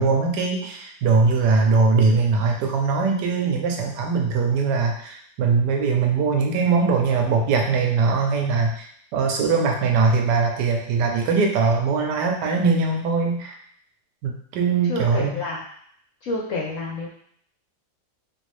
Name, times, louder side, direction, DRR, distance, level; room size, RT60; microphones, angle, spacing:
voice 1, 0.0-8.9 9.1-13.5 14.2-15.4, right 4 dB, 80° right, 2 dB, 1.2 m, -21 dB
voice 2, 14.9-15.6 16.2-17.1, left 2 dB, 65° left, -3 dB, 0.8 m, -29 dB
3.4 x 2.6 x 3.1 m, 0.66 s
omnidirectional pair, 1.8 m